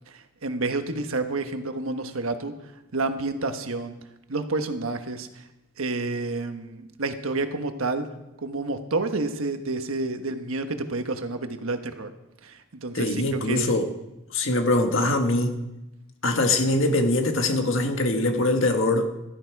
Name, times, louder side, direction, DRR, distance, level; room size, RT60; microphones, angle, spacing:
voice 1, 0.1-2.5 2.9-3.9 4.3-5.4 5.8-8.1 8.4-12.1 12.4-13.7, right 3 dB, 80° right, 1.3 m, -29 dB
voice 2, 12.9-13.9 14.3-15.6 16.2-19.1, left 2 dB, 70° left, 1.6 m, -23 dB
16.0 x 12.5 x 4.7 m
head